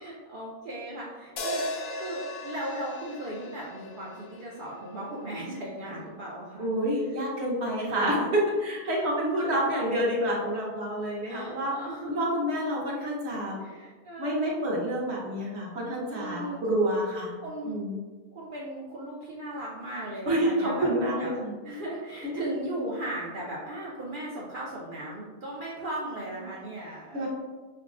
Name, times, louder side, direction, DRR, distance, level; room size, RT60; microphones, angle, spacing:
voice 1, 0.0-6.7 7.0-7.1 9.3-9.6 11.3-12.1 13.6-14.6 16.1-16.7 17.4-17.8 18.3-21.3 21.6-27.3, right 1 dB, 90° right, -5 dB, 0.4 m, -37 dB
sound 1, 1.4-5.6, left 1 dB, 85° left, 0.5 m, -38 dB
voice 2, 6.6-8.3 8.6-11.7 12.1-13.5 14.2-17.3 17.6-18.0 20.3-21.5 22.2-22.4 27.1-27.3, equal, 50° right, -4 dB, 1.0 m, -28 dB
5.7 x 2.2 x 2.4 m, 1.3 s
omnidirectional pair, 1.6 m